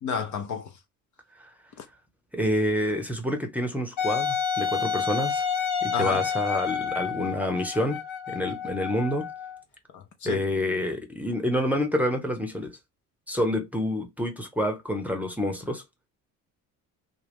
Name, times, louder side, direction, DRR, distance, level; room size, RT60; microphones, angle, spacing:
voice 1, 0.0-0.7 1.8-1.9 5.9-6.2 9.9-10.4, left 6 dB, 45° left, 0.7 m, -31 dB
voice 2, 2.3-5.5 5.8-8.0 8.3-9.3 10.2-12.8 13.3-15.8, left 1 dB, 5° right, 0.8 m, -28 dB
Wind instrument woodwind instrument, 4.0-9.6, left 7 dB, 70° left, 1.2 m, -29 dB
2.4 x 2.2 x 3.4 m
hypercardioid pair, 60°, 41 cm